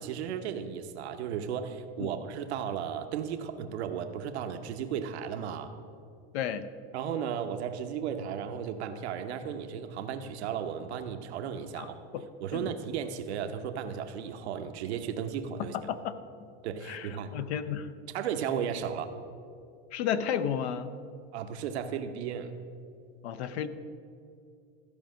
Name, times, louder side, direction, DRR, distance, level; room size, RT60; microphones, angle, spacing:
voice 1, 0.0-5.7 6.9-12.0 12.4-15.8 16.6-17.3 18.1-19.1 21.3-22.5, right 8 dB, 90° right, 7 dB, 0.9 m, -35 dB
voice 2, 15.7-16.1 16.9-17.9 19.9-20.9 23.2-23.7, left 8 dB, 85° left, 12 dB, 0.8 m, -32 dB
13.5 x 5.2 x 6.3 m, 2.4 s
supercardioid pair, 135°, 32 cm